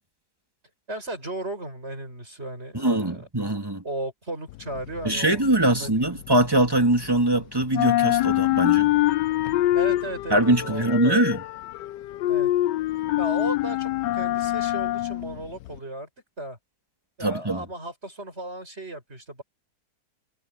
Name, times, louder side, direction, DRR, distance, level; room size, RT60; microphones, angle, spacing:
voice 1, 0.9-3.3 3.8-6.2 9.7-11.3 12.3-12.5 13.2-16.1 16.4-16.6 17.2-19.4, right 1 dB, 35° right, 7.6 m, -35 dB
voice 2, 2.7-3.8 5.0-8.9 10.3-11.4 17.2-17.6, right 1 dB, 10° right, 2.4 m, -22 dB
sound 1, 4.5-7.4 7.6-15.8, left 15 dB, 75° left, 1.2 m, -25 dB
omnidirectional pair, 2.0 m